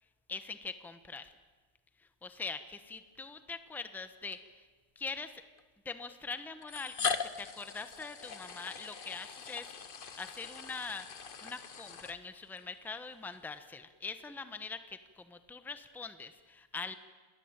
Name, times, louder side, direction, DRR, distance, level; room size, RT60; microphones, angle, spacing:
voice 1, 0.3-1.3 2.0-4.7 4.9-5.4 5.8-16.9, left 4 dB, 5° left, 10 dB, 0.3 m, -43 dB
sound 1, 3.2-3.3 4.3-4.4 5.6-5.7 6.6-12.6, left 6 dB, 50° left, 0.6 m, -40 dB
28.0 x 19.5 x 8.9 m, 1.4 s
omnidirectional pair, 2.4 m